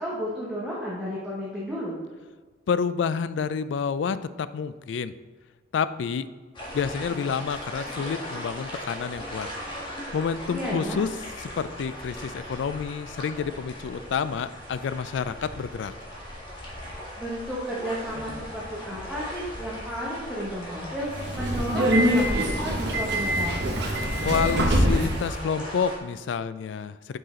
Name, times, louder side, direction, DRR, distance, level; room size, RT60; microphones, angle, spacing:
voice 1, 0.0-2.0 10.5-11.0 17.2-23.7, equal, 5° right, -7 dB, 1.1 m, -32 dB
voice 2, 2.7-5.1 5.7-6.3 6.7-9.5 10.1-11.1 11.6-15.9 24.2-27.2, left 6 dB, 75° left, 14 dB, 0.3 m, -29 dB
sound 1, 6.5-26.0, equal, 25° left, 1.7 m, -38 dB
Subway metro underground, 21.1-25.3, equal, 65° right, 1.0 m, -24 dB
5.7 x 5.4 x 3.8 m, 1.5 s
head